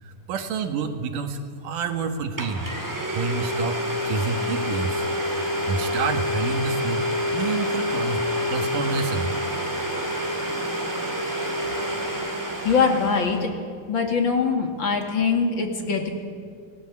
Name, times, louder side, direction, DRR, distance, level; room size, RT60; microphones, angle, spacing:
voice 1, 0.0-2.7 3.1-3.8 4.1-5.1 5.4-8.2 8.5-9.4, right 5 dB, 70° right, 6 dB, 3.0 m, -28 dB
Domestic sounds home sounds, 1.9-2.0 2.4-13.4, equal, 5° right, 2.0 m, -27 dB
sound 1, 7.5-13.7, left 2 dB, 65° left, 3.9 m, -43 dB
voice 2, 12.6-13.5 13.9-16.1, left 5 dB, 40° left, 4 dB, 2.7 m, -22 dB
29.5 x 18.0 x 8.6 m, 2.2 s
omnidirectional pair, 3.9 m